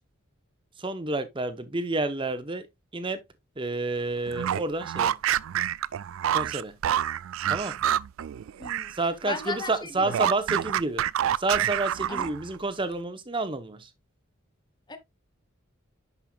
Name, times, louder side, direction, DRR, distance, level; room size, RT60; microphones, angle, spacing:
voice 1, 0.8-2.7 2.9-3.2 3.6-5.2 6.3-6.8 7.5-7.8 9.0-11.0 11.4-13.9, right 2 dB, 25° right, 0.8 m, -29 dB
sound 1, 4.3-9.0 9.3-12.6, right 10 dB, 70° right, 0.3 m, -28 dB
voice 2, 8.6-9.0 9.3-10.3 12.1-12.3 14.9-15.0, left 4 dB, 20° left, 0.9 m, -36 dB
10.5 x 5.5 x 2.3 m
head